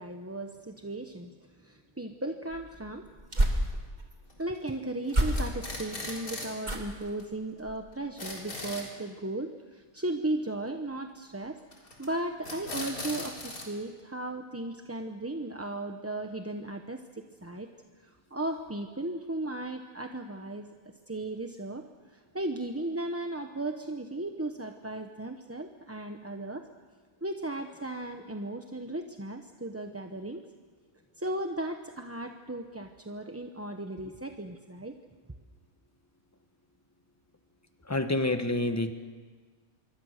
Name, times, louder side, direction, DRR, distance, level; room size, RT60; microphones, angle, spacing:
voice 1, 0.0-3.1 4.4-11.6 12.0-17.7 18.0-20.7 21.1-26.7 27.2-30.4 31.2-34.9, right 2 dB, 10° right, 4 dB, 0.8 m, -36 dB
sound 1, 2.5-4.2 5.1-5.8 6.6-7.1 7.6-7.9 8.3-8.4, right 1 dB, 30° right, 2.8 m, -30 dB
sound 2, 4.3-4.7 5.1-6.6 6.9-7.0 7.2-7.3 7.6-7.7 7.9-8.9 11.7-12.1 12.4-13.7, left 2 dB, 80° left, 4.6 m, -39 dB
voice 2, 37.9-38.9, left 2 dB, 10° left, 8 dB, 1.2 m, -27 dB
26.0 x 23.5 x 6.6 m, 1.5 s
omnidirectional pair, 1.5 m